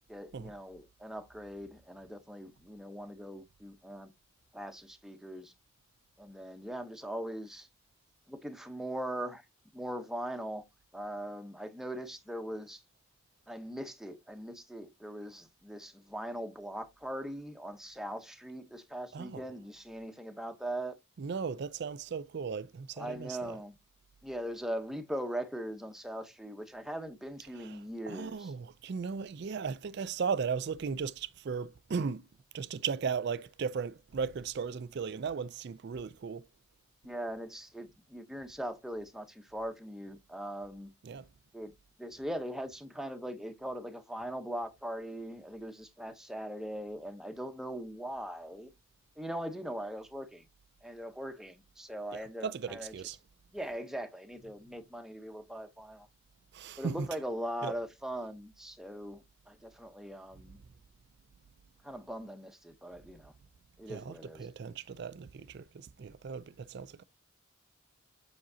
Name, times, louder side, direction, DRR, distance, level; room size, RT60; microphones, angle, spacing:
voice 1, 0.1-4.1 4.5-5.5 6.2-7.7 8.3-9.5 9.7-10.6 10.9-12.8 13.5-21.0 23.0-23.8 24.2-28.5 37.0-40.9 41.5-41.7 42.0-48.7 49.2-50.4 50.8-53.2 53.5-56.1 56.8-60.6 61.8-63.3 63.8-64.5, equal, ahead, 0.7 m, -40 dB
voice 2, 19.1-19.4 21.2-23.6 27.6-32.3 32.5-36.4 41.0-41.3 52.4-53.2 56.5-57.0 57.6-57.7 63.9-67.0, right 6 dB, 50° right, 0.3 m, -36 dB
7.5 x 5.9 x 2.7 m
head